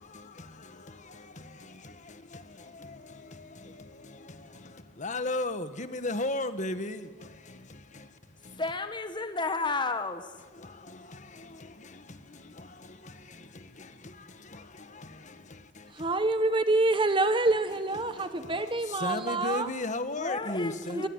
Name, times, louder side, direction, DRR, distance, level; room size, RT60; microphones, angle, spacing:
voice 1, 0.0-8.6 10.5-16.1 17.9-21.0, left 2 dB, 40° left, 1.6 m, -38 dB
voice 2, 8.6-10.3 20.1-21.1, left 3 dB, 25° left, 1.4 m, -32 dB
voice 3, 15.9-19.7 20.9-21.1, right 2 dB, 25° right, 1.2 m, -27 dB
24.0 x 24.0 x 9.8 m
head